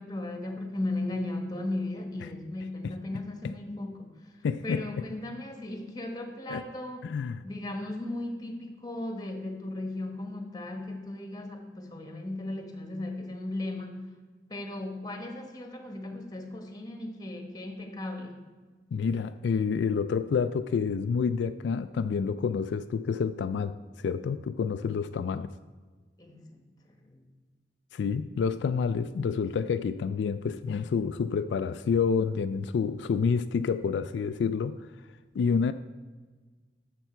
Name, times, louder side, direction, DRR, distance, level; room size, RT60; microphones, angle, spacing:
voice 1, 0.0-7.1 7.4-14.1 14.5-18.4 26.2-27.2, left 2 dB, 20° left, 4 dB, 1.2 m, -36 dB
voice 2, 4.4-5.0 6.5-6.6 7.0-7.4 18.9-25.5 27.9-34.9 35.3-35.7, left 6 dB, 75° left, 10 dB, 0.3 m, -28 dB
11.0 x 6.9 x 4.4 m, 1.4 s
head